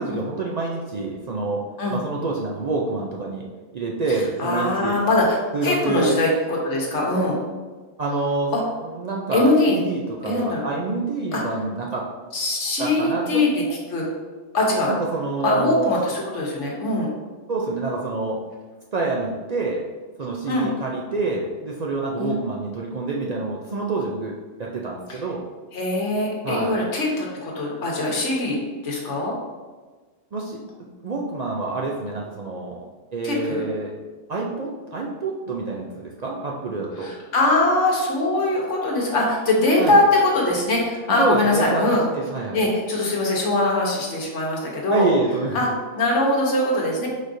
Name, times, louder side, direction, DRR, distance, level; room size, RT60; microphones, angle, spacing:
voice 1, 0.0-1.6 1.9-3.5 3.7-5.0 5.5-6.2 8.0-8.5 8.8-12.0 12.8-13.4 14.9-15.9 17.5-18.4 18.9-19.9 20.2-24.3 24.6-25.4 26.4-26.8 30.3-30.6 31.0-32.8 33.1-33.9 34.3-37.1 39.8-40.0 41.2-42.6 44.9-45.7, right 3 dB, 55° right, -2 dB, 0.4 m, -27 dB
voice 2, 4.4-5.4 5.6-7.4 8.5-8.6 9.3-9.8 10.2-10.6 11.3-11.4 12.3-14.1 14.5-14.9 15.4-17.1 20.5-20.7 22.2-22.4 25.1-25.2 25.7-29.3 33.2-33.7 37.0-42.0 42.5-45.1 45.5-45.7 46.0-47.1, left 2 dB, 85° left, -2 dB, 1.3 m, -22 dB
4.8 x 4.1 x 2.6 m, 1.4 s
omnidirectional pair, 1.2 m